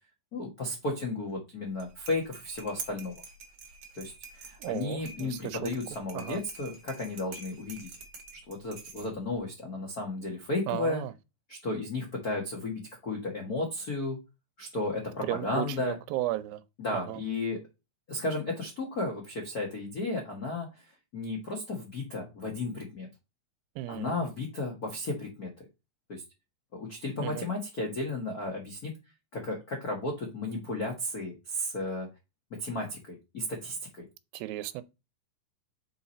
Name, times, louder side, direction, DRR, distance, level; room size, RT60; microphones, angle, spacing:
voice 1, 0.3-3.2 3.9-7.9 8.5-11.0 11.5-14.2 14.6-16.0 16.8-17.7 18.1-20.9 21.1-23.1 23.9-25.5 26.1-26.2 26.7-28.9 29.3-32.1 32.6-34.0, left 2 dB, 80° left, 0.8 m, -34 dB
sound 1, 1.7-9.4, right 4 dB, 60° right, 1.3 m, -47 dB
voice 2, 4.6-5.7 6.1-6.4 10.7-11.1 15.3-16.6 16.9-17.2 23.8-24.3 27.2-27.5 34.3-34.8, right 15 dB, 90° right, 2.4 m, -34 dB
5.9 x 4.8 x 4.2 m
omnidirectional pair, 4.1 m